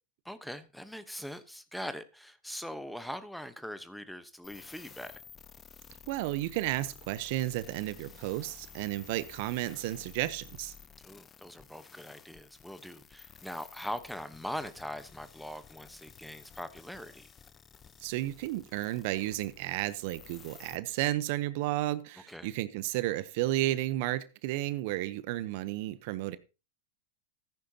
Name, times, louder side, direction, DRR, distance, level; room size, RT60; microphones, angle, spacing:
voice 1, 0.2-5.2 11.0-17.3 22.3-22.5, equal, ahead, 1.0 m, -42 dB
sound 1, 4.4-20.8, left 7 dB, 25° left, 0.8 m, -53 dB
voice 2, 6.1-10.7 18.0-26.4, right 16 dB, 60° right, 0.8 m, -32 dB
14.5 x 10.0 x 2.8 m
hypercardioid pair, 110°, 0 cm